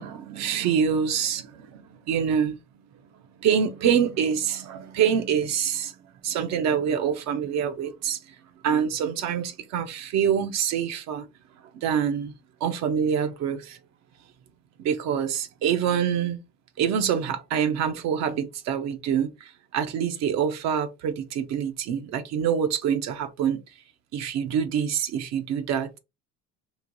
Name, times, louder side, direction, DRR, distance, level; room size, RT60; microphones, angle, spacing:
voice 1, 0.0-2.6 3.4-5.9 6.2-8.2 8.6-11.2 11.7-12.3 12.6-13.8 14.8-16.4 16.8-19.3 19.7-23.6 24.1-26.0, right 8 dB, 60° right, 0.7 m, -25 dB
3.2 x 2.5 x 3.8 m
cardioid pair, 125°, 31 cm